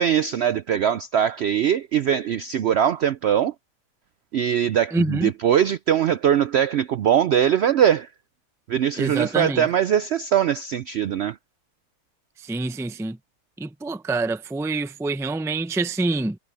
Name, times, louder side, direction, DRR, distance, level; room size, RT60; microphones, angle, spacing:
voice 1, 0.0-3.5 4.3-8.1 8.7-11.4, right 9 dB, 70° right, 0.6 m, -21 dB
voice 2, 4.9-5.3 9.0-9.7 12.4-13.2 13.6-16.4, right 2 dB, 5° right, 0.4 m, -26 dB
omnidirectional pair, 1.6 m